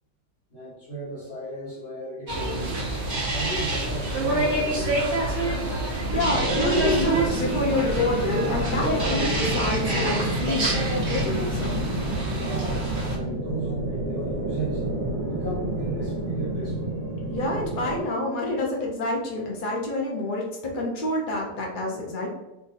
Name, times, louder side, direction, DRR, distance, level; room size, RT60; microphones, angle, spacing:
voice 1, 0.5-2.8 3.1-5.1 12.3-14.8 15.2-17.0, right 2 dB, 40° left, -8 dB, 1.3 m, -35 dB
sound 1, 2.3-13.2, right 1 dB, 40° right, 1.1 m, -27 dB
voice 2, 6.1-11.8 17.3-22.3, left 2 dB, 75° left, -2 dB, 0.4 m, -27 dB
sound 2, 6.1-18.0, right 2 dB, 80° right, 1.5 m, -30 dB
3.5 x 2.5 x 4.0 m, 0.93 s
omnidirectional pair, 1.9 m